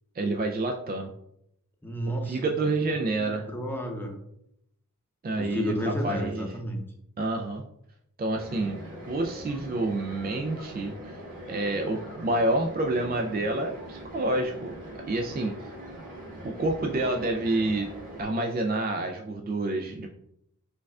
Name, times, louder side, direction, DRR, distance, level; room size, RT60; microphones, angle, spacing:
voice 1, 0.1-1.1 2.3-3.5 5.2-6.5 7.2-7.6 8.2-8.8 9.1-10.9 11.5-14.7 15.1-15.8 16.4-17.9 18.2-20.1, right 2 dB, 30° right, 2 dB, 0.4 m, -28 dB
voice 2, 1.8-2.7 3.2-4.1 5.4-6.8, equal, 5° left, 1 dB, 0.7 m, -32 dB
sound 1, 8.3-18.2, right 1 dB, 80° right, 1.4 m, -42 dB
4.5 x 2.3 x 2.4 m, 0.76 s
wide cardioid pair, 50°, 31 cm